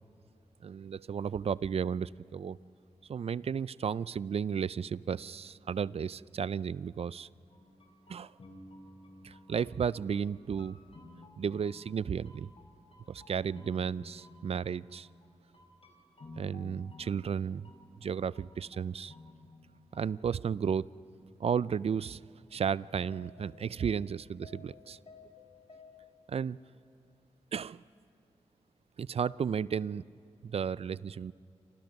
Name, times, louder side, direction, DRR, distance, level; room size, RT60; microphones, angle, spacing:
voice 1, 0.6-2.6 3.1-7.3 8.1-8.3 9.2-10.8 11.4-12.5 13.1-15.1 16.4-17.7 18.0-19.1 19.9-20.8 21.4-22.2 22.5-25.0 26.3-26.6 27.5-27.8 29.0-30.0 30.4-31.3, right 7 dB, 60° right, 20 dB, 0.5 m, -33 dB
sound 1, 7.5-20.6 20.9-21.0 22.5-22.6 22.8-26.1, left 3 dB, 55° left, 4.0 m, -55 dB
28.5 x 26.5 x 5.4 m, 2.6 s
cardioid pair, 45°, 12 cm